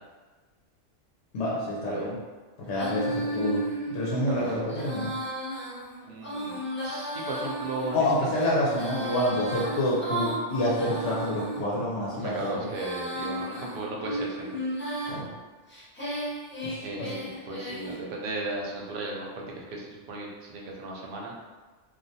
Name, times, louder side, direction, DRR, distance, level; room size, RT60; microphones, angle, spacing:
voice 1, 1.3-2.1 2.6-5.1 7.9-12.6 15.1-15.3 16.6-17.1, left 1 dB, 75° left, -6 dB, 0.9 m, -28 dB
Female singing, 2.7-11.6 12.2-15.2 15.7-18.0, right 1 dB, 15° left, 0.3 m, -34 dB
voice 2, 4.3-4.6 6.1-8.3 12.1-14.6 16.8-21.3, right 2 dB, 60° right, -2 dB, 0.6 m, -36 dB
2.4 x 2.1 x 2.7 m, 1.3 s
omnidirectional pair, 1.2 m